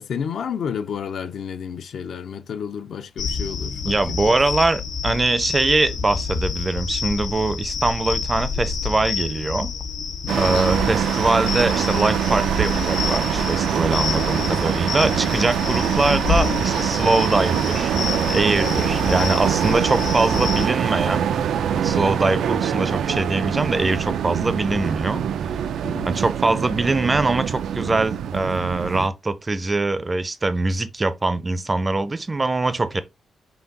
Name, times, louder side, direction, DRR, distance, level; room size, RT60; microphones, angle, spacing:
voice 1, 0.0-4.0 4.3-4.4 10.2-10.5 25.8-26.1, left 7 dB, 60° left, 0.5 m, -31 dB
sound 1, 3.2-20.7, left 5 dB, 90° left, 0.9 m, -28 dB
voice 2, 3.9-9.7 10.4-17.9 18.3-21.3 21.7-25.2 26.0-33.0, right 2 dB, 20° right, 0.4 m, -22 dB
sound 2, 10.3-29.1, right 9 dB, 90° right, 0.4 m, -24 dB
5.8 x 2.3 x 3.8 m
wide cardioid pair, 180°, 0 cm